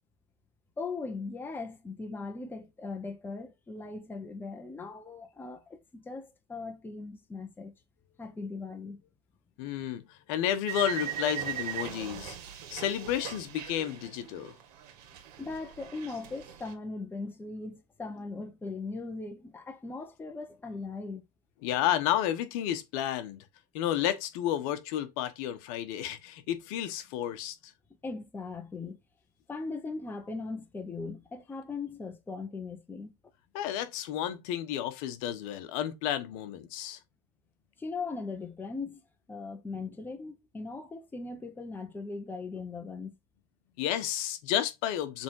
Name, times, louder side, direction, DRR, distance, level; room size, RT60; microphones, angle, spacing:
voice 1, 0.8-7.7 8.2-9.0 15.4-21.2 28.0-29.0 29.5-33.1 37.8-39.0 39.3-43.2, left 3 dB, 10° left, 1.0 m, -39 dB
voice 2, 9.6-12.4 12.7-14.5 21.6-23.4 23.7-27.7 33.5-37.0 43.8-45.2, left 11 dB, 55° left, 1.2 m, -31 dB
sound 1, 10.7-14.6 14.9-16.7, right 11 dB, 70° right, 2.2 m, -39 dB
7.3 x 3.6 x 4.8 m
supercardioid pair, 145°, 21 cm